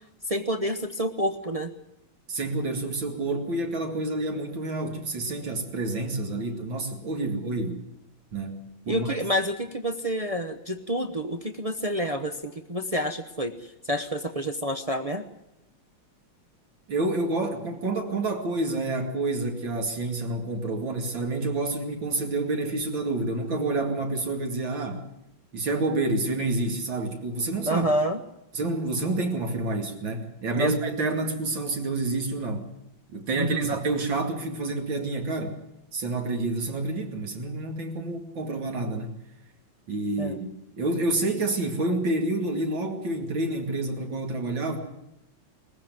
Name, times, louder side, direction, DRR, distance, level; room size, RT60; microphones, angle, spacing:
voice 1, 0.3-1.7 8.9-13.5 13.9-15.2 27.7-28.2 30.6-30.7 33.4-33.7 40.2-40.4, equal, 35° right, 4 dB, 0.5 m, -28 dB
voice 2, 2.3-7.8 8.3-9.2 16.9-25.0 25.5-28.0 28.5-32.7 33.1-35.6 35.9-39.1 39.9-40.5 40.8-44.8, right 2 dB, 60° right, 3 dB, 3.2 m, -28 dB
21.0 x 15.0 x 9.4 m, 0.87 s
omnidirectional pair, 2.4 m